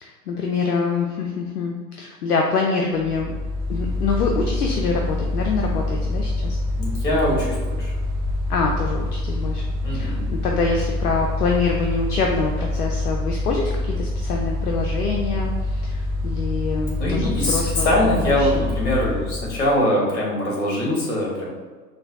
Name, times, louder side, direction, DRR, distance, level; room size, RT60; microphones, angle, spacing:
voice 1, 0.0-3.3 3.7-6.6 8.5-18.7, left 4 dB, 70° left, 1 dB, 0.6 m, -25 dB
Mechanical fan, 3.0-19.8, left 2 dB, 40° right, 0.9 m, -26 dB
voice 2, 6.8-7.9 9.8-10.2 17.0-21.5, left 1 dB, 45° left, -3 dB, 1.5 m, -22 dB
4.0 x 2.2 x 3.7 m, 1.4 s
figure-of-eight pair, 100°, 49 cm